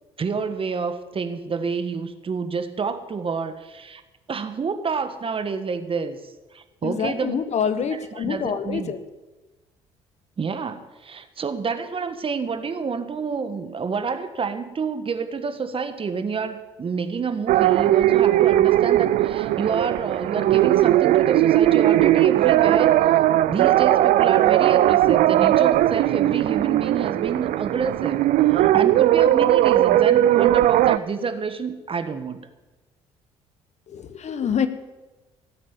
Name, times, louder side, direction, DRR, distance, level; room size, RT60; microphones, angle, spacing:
voice 1, 0.2-4.0 4.3-7.3 8.2-8.9 10.4-22.9 23.5-28.2 28.5-32.4, right 5 dB, 35° right, 9 dB, 1.5 m, -28 dB
voice 2, 6.8-9.0 33.9-34.7, left 7 dB, 50° left, 11 dB, 1.2 m, -26 dB
sound 1, 17.5-31.0, right 13 dB, 60° right, 0.5 m, -18 dB
18.0 x 8.2 x 7.3 m, 1.1 s
hypercardioid pair, 55°, 15 cm